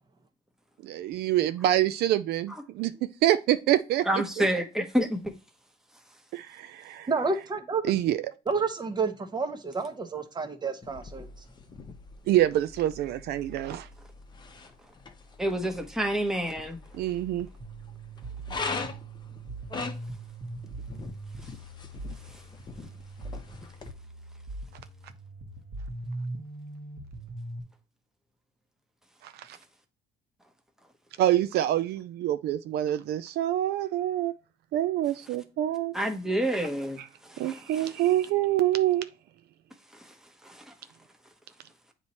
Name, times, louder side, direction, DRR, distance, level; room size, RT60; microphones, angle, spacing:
voice 1, 0.8-4.1 4.4-4.5 6.3-7.1 7.9-8.2 12.3-13.9 16.9-17.5 29.2-29.6 31.2-34.3 34.7-35.9 37.0-37.1 37.4-39.1, right 13 dB, 70° right, 0.4 m, -26 dB
voice 2, 4.1-5.3 15.4-16.8 35.9-37.9 39.9-40.1 40.4-40.7, right 1 dB, 5° right, 1.1 m, -29 dB
voice 3, 7.1-7.8 8.5-11.3, right 4 dB, 25° right, 1.0 m, -30 dB
sound 1, 10.8-23.9, left 4 dB, 25° left, 0.8 m, -42 dB
sound 2, 17.6-27.6, right 2 dB, 50° right, 1.3 m, -41 dB
8.0 x 3.0 x 4.2 m
cardioid pair, 110°, 17 cm